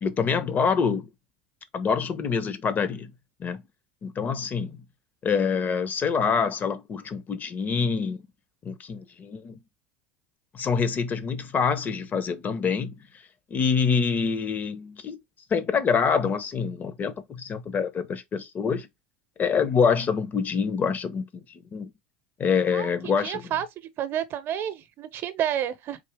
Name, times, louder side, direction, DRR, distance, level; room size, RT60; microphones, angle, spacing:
voice 1, 0.0-1.1 1.7-3.1 3.4-3.6 4.0-4.8 5.2-8.2 8.6-9.5 10.5-13.0 13.5-15.2 15.5-18.9 19.4-21.9 22.4-23.5, left 6 dB, 35° left, 0.7 m, -26 dB
voice 2, 23.2-23.7 24.0-26.0, right 10 dB, 45° right, 0.7 m, -29 dB
3.8 x 2.8 x 3.4 m
hypercardioid pair, 75°, 5 cm